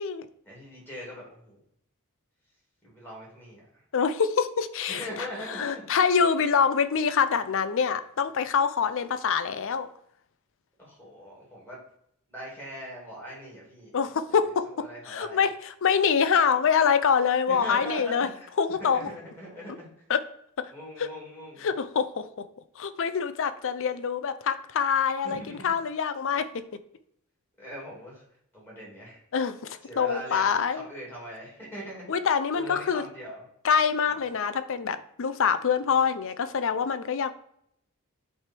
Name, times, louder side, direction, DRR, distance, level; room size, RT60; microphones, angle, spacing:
voice 1, 0.4-1.6 2.8-3.8 4.9-6.0 10.8-11.8 12.3-14.0 14.4-15.4 17.5-18.5 18.8-19.9 20.7-21.6 25.2-25.8 27.6-28.2 28.5-29.2 29.8-32.1 32.5-33.5 34.0-34.2, equal, 10° left, -4 dB, 2.7 m, -41 dB
voice 2, 3.9-9.9 13.9-14.7 15.1-18.3 18.6-19.1 20.1-20.2 20.6-20.7 21.0-21.1 21.6-22.5 22.8-26.5 29.3-30.8 32.1-33.0 33.6-37.3, left 6 dB, 60° left, 12 dB, 0.5 m, -25 dB
8.6 x 3.4 x 4.5 m, 0.72 s
head